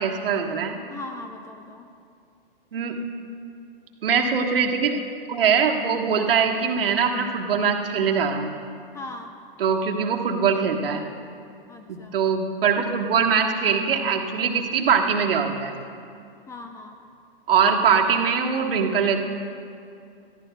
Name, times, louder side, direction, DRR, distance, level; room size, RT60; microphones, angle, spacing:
voice 1, 0.0-0.8 2.7-3.0 4.0-5.0 5.3-8.5 9.6-11.0 11.9-15.7 17.5-19.2, right 6 dB, 70° right, 2 dB, 1.5 m, -22 dB
voice 2, 0.9-1.9 8.9-9.3 11.7-12.2 16.5-17.0, left 2 dB, 10° left, 5 dB, 0.4 m, -39 dB
21.5 x 14.5 x 2.3 m, 2.5 s
hypercardioid pair, 120°, 29 cm